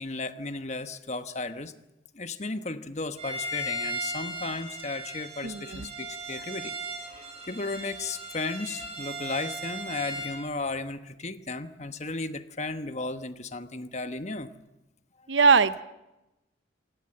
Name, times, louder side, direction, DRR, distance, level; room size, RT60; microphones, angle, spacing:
voice 1, 0.0-1.7 2.1-6.7 7.5-14.5, left 3 dB, 35° left, 10 dB, 1.2 m, -34 dB
Bowed string instrument, 3.2-10.4, right 1 dB, 35° right, 6.9 m, -37 dB
voice 2, 5.4-5.9 15.3-15.8, right 5 dB, 70° right, 14 dB, 0.8 m, -21 dB
27.5 x 18.5 x 7.9 m, 0.96 s
head